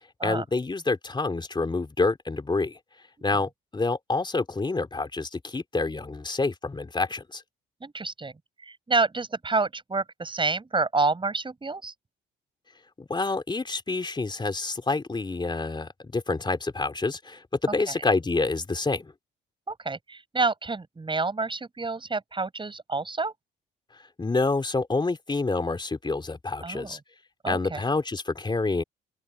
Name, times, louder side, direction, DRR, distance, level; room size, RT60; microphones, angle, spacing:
voice 1, 0.2-2.8 3.2-7.4 13.0-19.1 24.2-27.0 27.5-28.8, left 3 dB, 25° left, 3.4 m, -27 dB
voice 2, 7.8-8.3 8.6-11.9 17.9-18.0 19.7-23.3 26.6-27.0 27.4-27.8, right 3 dB, 25° right, 7.0 m, -28 dB
open air
cardioid pair, 90°, 20 cm